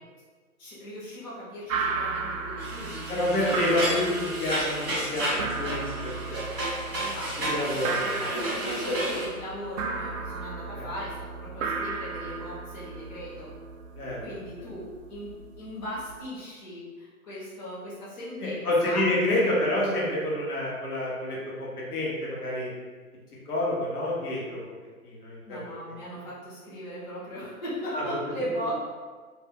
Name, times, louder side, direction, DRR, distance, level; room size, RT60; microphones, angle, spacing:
voice 1, 0.6-3.9 6.9-13.5 14.2-19.1 25.5-28.8, equal, 30° left, -9 dB, 0.9 m, -38 dB
sound 1, 1.7-16.2, right 4 dB, 65° right, 0.5 m, -35 dB
sound 2, 2.6-9.3, right 1 dB, 5° right, 0.6 m, -32 dB
voice 2, 3.1-6.5 7.4-8.2 10.7-10.9 13.9-14.2 18.4-22.7 23.5-24.6 25.0-25.6 25.9-26.0 27.9-28.0, left 1 dB, 80° left, -5 dB, 1.2 m, -28 dB
2.6 x 2.2 x 3.6 m, 1.4 s
hypercardioid pair, 150°, 45 cm